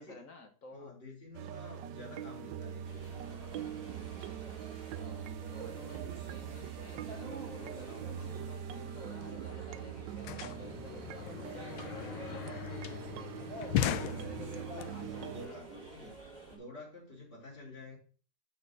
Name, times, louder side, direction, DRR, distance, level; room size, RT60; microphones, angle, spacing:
voice 1, 0.0-1.0 5.5-12.2 13.8-15.6, left 3 dB, 50° left, 6 dB, 1.2 m, -52 dB
voice 2, 0.7-3.1 6.1-6.2 13.6-16.2 16.5-18.0, left 2 dB, 25° left, -6 dB, 4.0 m, -50 dB
sound 1, 1.3-15.5, right 9 dB, 75° right, 1.2 m, -43 dB
sound 2, 2.8-16.6, right 2 dB, 20° right, 3.7 m, -49 dB
sound 3, 9.3-9.4 9.6-14.8, left 12 dB, 90° left, 1.4 m, -38 dB
6.4 x 5.7 x 6.3 m, 0.39 s
omnidirectional pair, 2.1 m